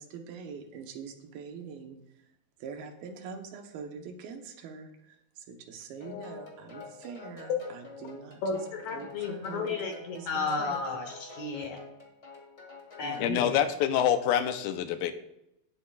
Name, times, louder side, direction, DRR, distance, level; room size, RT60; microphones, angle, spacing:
voice 1, 0.0-2.0 2.6-5.2 5.5-8.6 8.9-9.7 10.1-10.8 13.0-13.5, right 6 dB, 80° right, 5 dB, 2.9 m, -43 dB
sound 1, 6.0-13.4, left 4 dB, 30° left, 1.5 m, -47 dB
voice 2, 8.4-11.8 13.0-13.6, left 4 dB, 65° left, 4 dB, 2.0 m, -33 dB
voice 3, 13.2-15.1, left 10 dB, 85° left, 9 dB, 2.4 m, -26 dB
18.0 x 7.8 x 2.4 m, 0.83 s
omnidirectional pair, 4.2 m